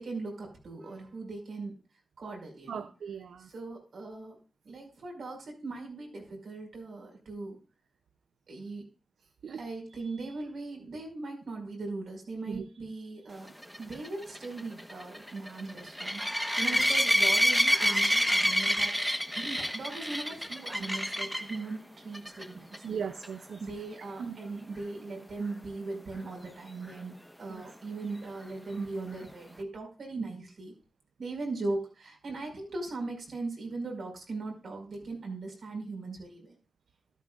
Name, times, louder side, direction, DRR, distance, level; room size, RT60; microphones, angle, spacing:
voice 1, 0.0-1.7 2.2-2.9 3.4-4.4 4.6-7.6 8.5-8.9 9.6-13.5 13.8-18.9 19.4-23.0 23.6-30.7 31.2-36.6, right 3 dB, 75° right, 1 dB, 5.2 m, -39 dB
voice 2, 2.7-3.5 9.4-9.6 12.5-12.6 16.7-16.8 22.8-23.6 24.2-24.4 27.5-27.6, right 6 dB, 90° right, 10 dB, 0.5 m, -38 dB
sound 1, 13.6-21.6 22.1-22.4 22.7-22.8 23.2-23.3 26.9-27.0, equal, ahead, 1.1 m, -27 dB
13.5 x 12.5 x 2.4 m, 0.34 s
cardioid pair, 80°, 0 cm